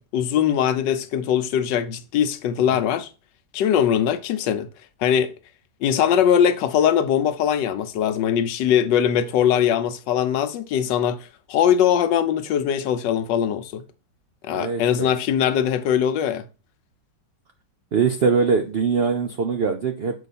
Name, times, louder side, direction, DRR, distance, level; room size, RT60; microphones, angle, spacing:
voice 1, 0.0-3.1 3.5-4.7 5.0-5.3 5.8-11.2 11.5-13.8 14.4-16.4, left 9 dB, 85° left, 1.3 m, -21 dB
voice 2, 14.5-15.1 17.9-20.3, right 5 dB, 75° right, 0.5 m, -22 dB
6.9 x 4.8 x 4.1 m
omnidirectional pair, 1.9 m